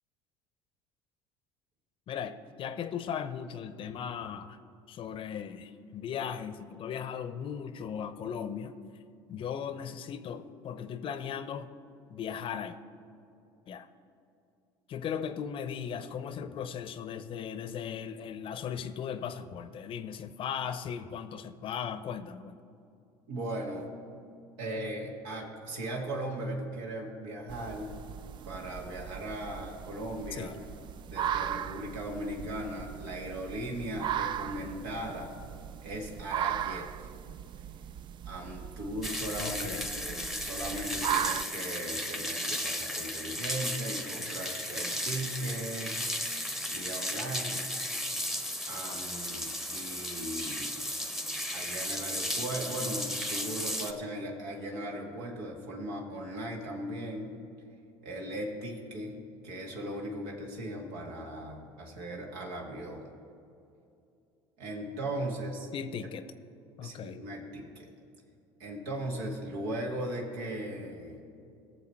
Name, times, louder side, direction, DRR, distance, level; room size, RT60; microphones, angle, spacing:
voice 1, 2.1-4.6 4.9-8.7 9.3-11.7 12.1-12.8 13.7-13.9 14.9-22.6 30.3-30.5 39.4-39.9 65.7-66.2 66.8-67.2, left 8 dB, 50° left, 12 dB, 0.7 m, -37 dB
voice 2, 23.3-23.9 24.6-27.9 28.4-30.5 31.1-35.3 35.8-37.1 38.3-39.7 39.9-46.0 46.7-47.7 48.7-50.8 51.5-57.3 58.0-59.2 59.4-63.1 64.6-65.7 66.8-67.9 68.6-71.2, right 1 dB, 80° right, 0 dB, 1.8 m, -38 dB
sound 1, 27.5-41.4, right 10 dB, 40° right, 0.3 m, -37 dB
sound 2, 39.0-53.9, equal, ahead, 0.9 m, -35 dB
17.5 x 6.9 x 4.5 m, 2.6 s
supercardioid pair, 90°, 12 cm